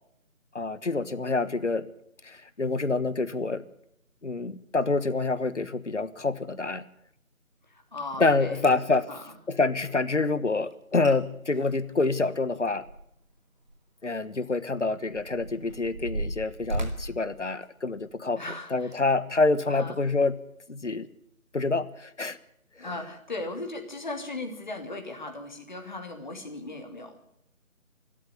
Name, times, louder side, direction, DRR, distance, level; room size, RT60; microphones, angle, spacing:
voice 1, 0.5-1.8 2.2-3.6 4.2-6.8 8.2-9.1 9.5-12.8 14.0-18.4 18.7-20.4 20.7-21.1 21.5-22.4 22.8-23.0, left 3 dB, 60° left, 15 dB, 1.5 m, -27 dB
voice 2, 7.7-8.6 9.1-9.2 18.4-18.9 19.7-20.0 22.8-27.2, left 2 dB, 35° left, 4 dB, 3.0 m, -37 dB
sound 1, 8.1-8.2 8.6-9.0 10.7-10.8 11.0-11.1 11.5-13.3 13.6-13.8 14.5-18.2 18.8-19.0 19.6-19.8, right 1 dB, 35° right, 2.4 m, -36 dB
25.5 x 13.0 x 8.2 m, 0.73 s
figure-of-eight pair, 165°, 41 cm